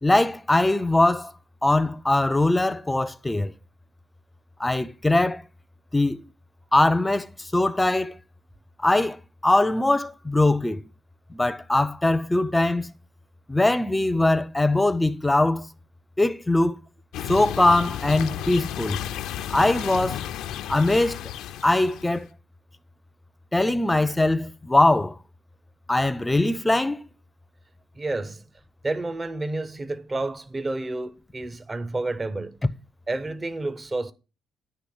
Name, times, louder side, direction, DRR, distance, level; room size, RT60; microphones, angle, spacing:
voice 1, 0.0-1.3 1.6-3.5 4.6-5.4 5.9-6.2 6.7-8.2 8.8-10.8 11.3-12.9 13.5-15.7 16.2-16.8 17.3-19.0 19.5-20.2 20.7-21.2 21.6-22.3 23.5-25.1 25.9-27.0, left 2 dB, 10° left, 0.5 m, -21 dB
sound 1, 17.1-22.2, left 11 dB, 85° left, 0.5 m, -33 dB
voice 2, 28.0-28.4 28.8-32.6 33.1-34.1, right 2 dB, 25° right, 0.7 m, -30 dB
9.8 x 3.4 x 6.3 m
cardioid pair, 90°, 0 cm